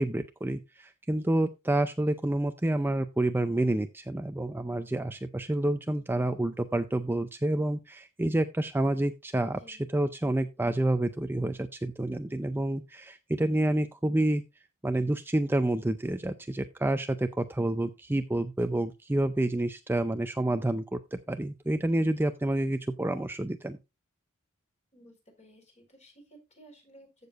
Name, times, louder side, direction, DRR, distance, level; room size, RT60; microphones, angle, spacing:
voice 1, 0.0-14.4 14.8-23.8, right 1 dB, 10° right, 8 dB, 0.5 m, -28 dB
voice 2, 9.5-9.9 24.9-27.3, right 1 dB, 30° left, 2 dB, 4.5 m, -56 dB
14.5 x 6.8 x 2.5 m, 0.24 s
head